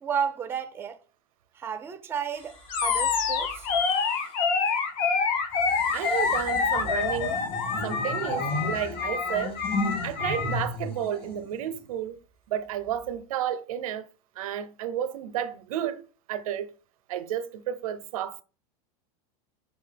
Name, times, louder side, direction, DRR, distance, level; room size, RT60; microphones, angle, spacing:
voice 1, 0.0-1.0 1.5-3.7, right 7 dB, 15° right, 0.4 m, -32 dB
sound 1, 2.3-4.5 5.5-11.9 12.9-13.2, left 2 dB, 30° left, 1.9 m, -35 dB
Animal, 2.7-10.7, left 5 dB, 50° left, 0.8 m, -27 dB
voice 2, 5.9-7.4 7.8-9.6 10.0-12.2 12.5-14.1 14.4-16.7 17.1-18.4, right 10 dB, 90° right, 0.5 m, -32 dB
5.3 x 2.6 x 3.2 m
supercardioid pair, 135°, 18 cm